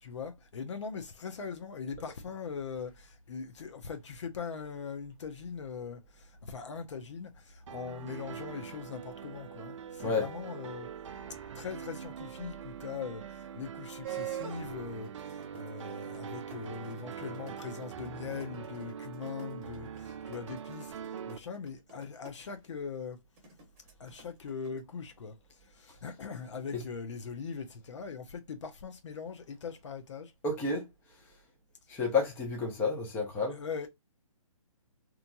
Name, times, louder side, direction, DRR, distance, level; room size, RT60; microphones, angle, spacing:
voice 1, 0.0-10.9 11.5-20.9 21.3-23.2 24.0-30.3 33.5-33.9, left 6 dB, 55° left, 0.6 m, -41 dB
sound 1, 7.7-21.4, right 8 dB, 60° right, 0.4 m, -43 dB
sound 2, 14.0-14.6 15.0-22.3 23.4-24.8, right 10 dB, 25° right, 1.0 m, -43 dB
voice 2, 30.4-30.9 31.9-33.6, left 4 dB, 10° left, 0.7 m, -30 dB
3.0 x 2.4 x 2.2 m
hypercardioid pair, 145°, 18 cm